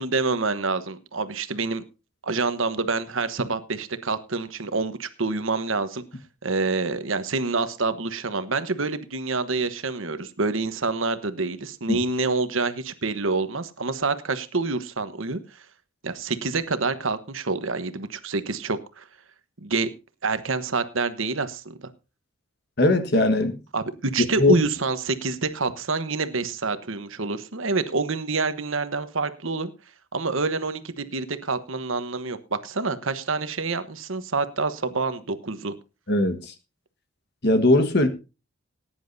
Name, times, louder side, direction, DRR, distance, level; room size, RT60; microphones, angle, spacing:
voice 1, 0.0-1.8 2.2-6.0 6.4-15.4 16.0-19.0 19.6-19.9 20.2-21.7 23.7-29.7 30.1-35.7, right 3 dB, 70° right, 11 dB, 1.2 m, -27 dB
voice 2, 22.8-23.6 24.4-24.5 36.1-36.5 37.4-38.1, left 2 dB, 50° left, 9 dB, 1.5 m, -19 dB
19.5 x 10.0 x 2.7 m, 0.30 s
head